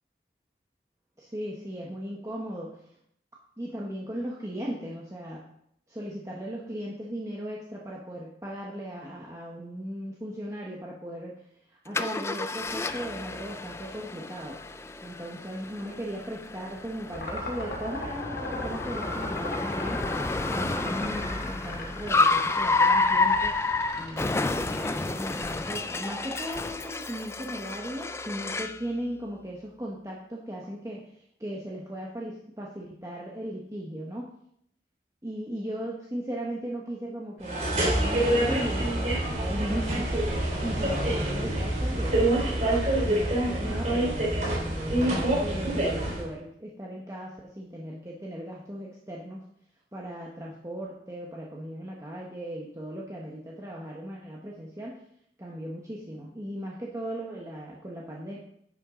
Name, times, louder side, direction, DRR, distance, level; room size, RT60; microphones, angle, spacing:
voice 1, 1.2-2.8 3.6-5.4 5.9-11.3 11.7-14.6 15.0-20.2 20.5-23.5 24.0-34.3 35.2-49.4 49.9-55.0 55.4-58.4, equal, 20° right, -3 dB, 1.1 m, -37 dB
Car, 11.9-28.8, left 3 dB, 15° left, 0.3 m, -30 dB
sound 1, 17.1-26.9, left 2 dB, 75° left, 2.6 m, -37 dB
sound 2, 37.4-46.3, right 1 dB, 40° right, 3.0 m, -26 dB
10.5 x 8.1 x 3.8 m, 0.71 s
head